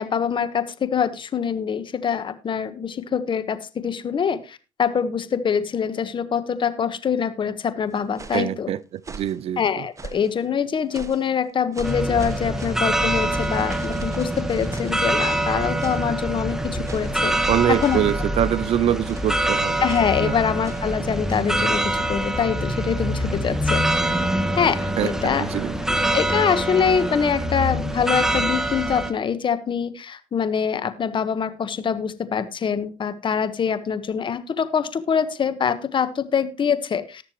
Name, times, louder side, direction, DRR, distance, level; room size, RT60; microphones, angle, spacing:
voice 1, 0.0-8.7 9.6-17.3 17.7-18.0 19.8-23.8 24.6-25.4 26.1-37.2, left 7 dB, 45° left, 1.3 m, -24 dB
sound 1, 7.9-8.5 9.0-9.4 10.0-10.4 10.9-11.3 11.7-15.5 15.8-16.1 16.8-17.2 17.8-18.2 19.0-19.4 19.9-20.2 20.6-20.9 21.3-21.5, right 4 dB, 25° right, 1.3 m, -41 dB
voice 2, 8.3-8.8 9.1-9.9 17.5-19.8 20.2-20.4 25.0-26.0, right 11 dB, 60° right, 0.5 m, -24 dB
sound 2, 11.8-29.1, right 1 dB, 5° right, 1.4 m, -25 dB
19.0 x 6.8 x 3.1 m
supercardioid pair, 70°, 12 cm